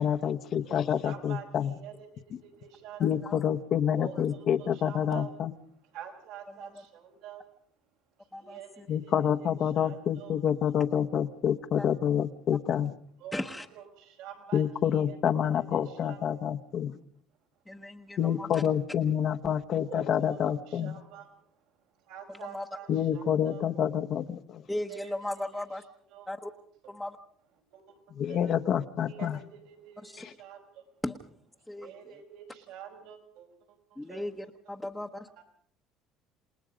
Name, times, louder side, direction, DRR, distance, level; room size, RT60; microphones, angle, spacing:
voice 1, 0.0-1.7 3.0-5.5 8.9-12.9 14.5-17.0 18.2-21.0 22.9-24.6 28.2-29.4 30.2-30.3, left 9 dB, 50° left, 7 dB, 1.1 m, -28 dB
voice 2, 0.6-3.2 3.9-5.4 5.7-7.5 8.2-10.4 10.6-11.0 13.2-16.3 19.8-23.7 24.8-25.7 26.1-27.0 27.7-28.6 29.1-30.9 31.6-34.2 35.4-35.5, right 9 dB, 80° right, 4 dB, 4.8 m, -48 dB
voice 3, 3.0-3.3 4.1-4.2 6.6-6.7 8.3-8.6 11.8-11.9 13.3-13.7 17.7-18.6 22.5-22.6 24.7-25.8 26.3-26.5 26.9-27.2 30.0-30.2 31.0-31.1 31.7-31.9 34.0-35.4, left 1 dB, 5° left, 1 dB, 1.1 m, -37 dB
29.0 x 19.0 x 5.2 m, 0.63 s
cardioid pair, 115°, 0 cm